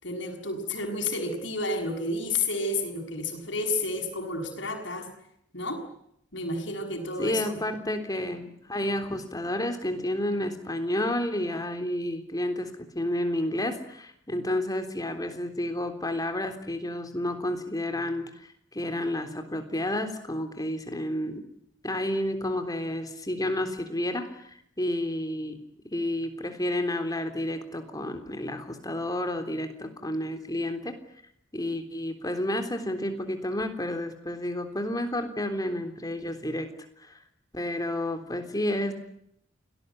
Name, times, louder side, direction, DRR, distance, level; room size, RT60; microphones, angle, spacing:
voice 1, 0.0-5.1 5.5-5.8 6.3-7.8, left 2 dB, 65° left, 4 dB, 7.0 m, -31 dB
voice 2, 7.2-21.4 21.8-25.6 25.9-30.9 31.5-36.7 37.0-37.2 37.5-38.9, left 1 dB, 20° left, 7 dB, 3.6 m, -30 dB
29.0 x 19.0 x 9.5 m, 0.74 s
head